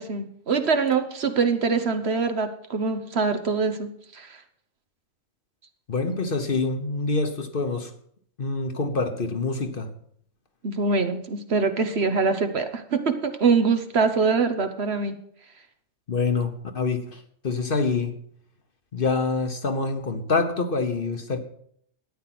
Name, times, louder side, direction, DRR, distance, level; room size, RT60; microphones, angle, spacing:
voice 1, 0.0-4.4 10.6-15.2, right 4 dB, 55° right, 8 dB, 1.2 m, -24 dB
voice 2, 5.9-7.9 8.4-9.9 16.1-18.1 18.9-21.4, left 4 dB, 45° left, 7 dB, 1.2 m, -26 dB
13.0 x 9.5 x 6.0 m, 0.67 s
omnidirectional pair, 1.4 m